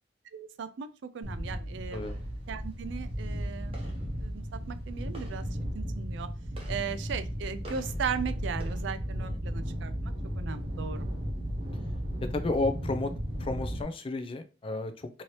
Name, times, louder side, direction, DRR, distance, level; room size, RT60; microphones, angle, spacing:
voice 1, 0.3-2.2 2.5-3.8 4.2-5.4 5.7-6.3 6.7-9.9 10.4-11.1, right 6 dB, 65° right, 11 dB, 0.3 m, -37 dB
sound 1, 1.2-13.8, equal, 30° right, 0.7 m, -35 dB
voice 2, 12.3-13.1 13.4-15.2, left 2 dB, 25° left, 9 dB, 0.3 m, -32 dB
2.8 x 2.7 x 3.0 m, 0.34 s
head